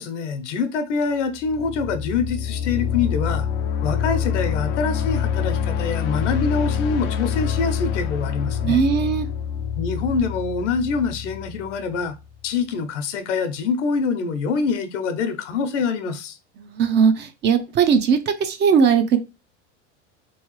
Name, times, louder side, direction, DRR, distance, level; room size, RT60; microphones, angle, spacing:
voice 1, 0.0-3.5 3.8-8.8 9.8-12.2 12.4-16.4, left 5 dB, 80° left, 0.9 m, -25 dB
sound 1, 1.4-12.1, left 8 dB, 40° left, 0.4 m, -26 dB
voice 2, 8.6-9.3 16.6-19.2, right 6 dB, 30° right, 0.6 m, -19 dB
3.5 x 3.1 x 3.0 m
supercardioid pair, 120°, 35 cm